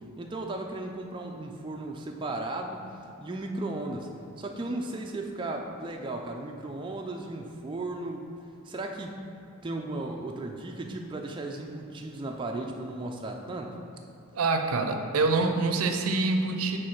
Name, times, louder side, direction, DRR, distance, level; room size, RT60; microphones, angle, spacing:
voice 1, 0.2-2.8 3.2-4.1 4.4-8.3 8.6-9.2 9.6-13.8, right 2 dB, 20° right, 2 dB, 0.3 m, -35 dB
voice 2, 14.3-16.8, right 3 dB, 90° right, 6 dB, 0.5 m, -25 dB
5.3 x 3.8 x 5.8 m, 2.7 s
head